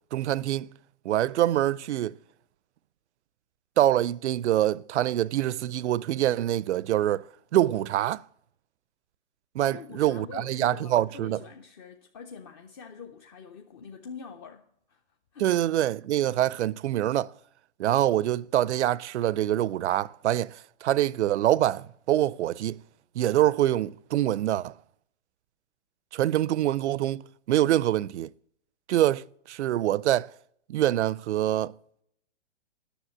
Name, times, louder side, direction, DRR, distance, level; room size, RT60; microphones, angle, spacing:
voice 1, 0.1-0.7 1.0-2.2 3.8-8.2 9.5-11.4 15.4-17.3 17.8-22.8 23.1-24.7 26.1-28.3 28.9-30.3 30.7-31.7, right 13 dB, 70° right, 0.5 m, -25 dB
voice 2, 9.6-15.0 15.3-15.5, left 6 dB, 20° left, 0.5 m, -45 dB
10.0 x 6.5 x 7.6 m
hypercardioid pair, 140°, 36 cm